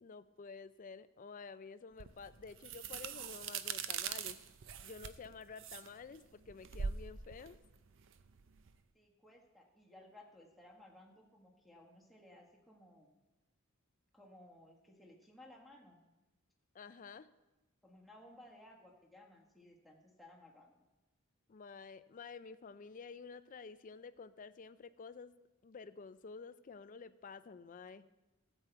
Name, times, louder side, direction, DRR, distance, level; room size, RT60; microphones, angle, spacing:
voice 1, 0.0-4.4 4.8-7.6 16.7-17.3 21.5-25.3 25.6-28.0, left 5 dB, 40° left, 13 dB, 0.4 m, -51 dB
sound 1, 2.0-8.8, right 7 dB, 60° right, 0.5 m, -43 dB
voice 2, 8.9-13.1 14.1-16.0 17.8-20.8, left 1 dB, ahead, -2 dB, 1.5 m, -59 dB
14.5 x 8.1 x 4.5 m, 1.1 s
head